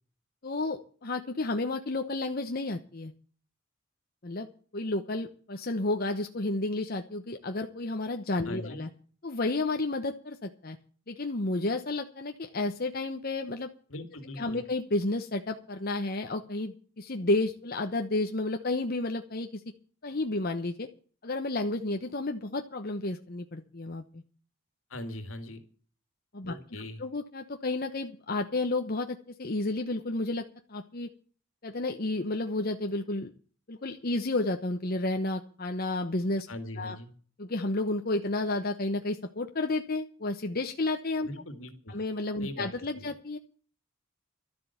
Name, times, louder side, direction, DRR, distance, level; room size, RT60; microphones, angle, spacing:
voice 1, 0.4-3.1 4.2-4.5 4.7-8.9 9.2-10.8 11.1-13.7 14.4-19.6 20.0-20.9 21.2-24.2 26.3-30.4 30.7-31.1 31.6-33.3 33.7-36.5 36.8-37.0 37.4-41.3 41.9-43.4, left 2 dB, 45° left, 5 dB, 1.0 m, -31 dB
voice 2, 8.4-8.8 13.9-14.6 24.9-25.6 26.5-27.0 36.5-37.1 41.2-42.0 42.4-42.7 42.9-43.1, left 1 dB, 80° left, 8 dB, 2.3 m, -40 dB
12.5 x 7.6 x 9.2 m, 0.41 s
head